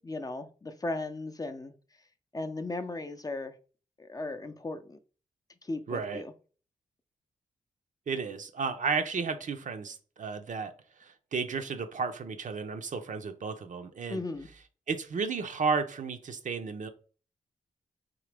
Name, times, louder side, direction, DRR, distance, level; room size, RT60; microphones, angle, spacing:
voice 1, 0.0-1.7 2.3-3.5 4.0-5.0 5.6-6.3 14.1-14.5, left 2 dB, 25° left, 8 dB, 0.5 m, -36 dB
voice 2, 5.9-6.2 8.1-10.7 11.0-14.2 14.9-16.9, right 5 dB, 55° right, 8 dB, 0.6 m, -33 dB
3.8 x 2.8 x 3.3 m, 0.38 s
supercardioid pair, 40°, 16 cm